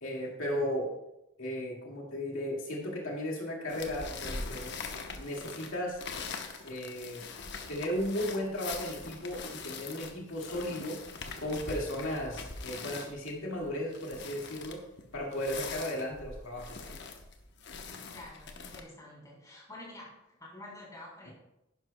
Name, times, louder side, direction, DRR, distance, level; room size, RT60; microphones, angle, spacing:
voice 1, 0.0-0.9 1.4-4.8 5.2-6.0 6.6-7.2 7.7-11.0 11.4-14.8 15.1-17.0, equal, 90° left, -2 dB, 2.1 m, -35 dB
sound 1, 3.7-18.8, left 4 dB, 60° left, 1.0 m, -42 dB
voice 2, 18.1-21.3, left 1 dB, 20° left, -5 dB, 3.5 m, -48 dB
11.0 x 10.5 x 2.3 m, 0.90 s
head